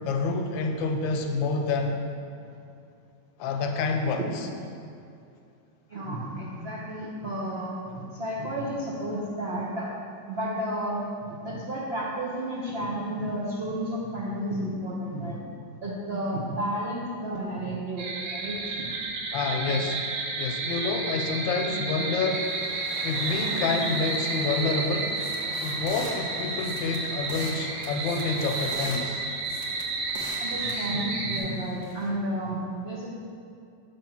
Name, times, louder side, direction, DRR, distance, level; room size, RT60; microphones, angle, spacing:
voice 1, 0.1-2.0 3.4-4.2 19.3-20.0 20.4-22.5 23.0-25.2 25.6-29.2, left 4 dB, 80° left, 3 dB, 1.3 m, -28 dB
voice 2, 5.9-9.9 10.3-15.4 15.8-18.9 30.4-33.1, right 1 dB, 65° right, -6 dB, 0.6 m, -32 dB
sound 1, 18.0-31.4, right 3 dB, 85° right, 1.5 m, -31 dB
sound 2, 22.3-32.1, left 1 dB, 45° left, 0.9 m, -45 dB
sound 3, 25.2-26.1 26.6-27.6 27.8-29.0 29.4-30.9, right 2 dB, 45° right, 1.2 m, -41 dB
7.0 x 3.5 x 5.8 m, 2.5 s
omnidirectional pair, 2.1 m